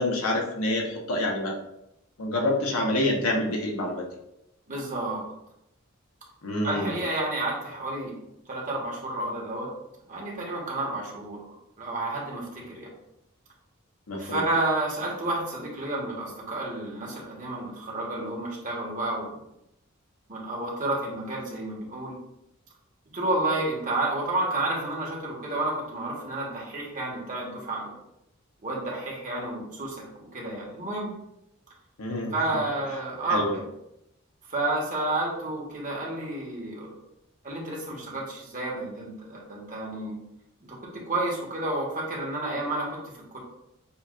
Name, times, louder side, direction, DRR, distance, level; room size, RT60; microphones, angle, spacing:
voice 1, 0.0-1.6 2.2-4.1 6.4-7.0 14.1-14.4 32.0-32.6 33.3-33.6, left 1 dB, 90° left, 0 dB, 0.9 m, -27 dB
voice 2, 4.7-5.2 6.6-8.1 8.5-9.7 10.1-11.4 11.8-12.9 14.2-19.3 20.3-22.1 23.1-28.0 28.6-31.1 32.3-33.6 34.5-37.0 37.4-40.2 40.6-42.9 43.3-43.4, right 2 dB, 40° right, -3 dB, 1.2 m, -30 dB
6.9 x 2.3 x 2.4 m, 0.84 s
head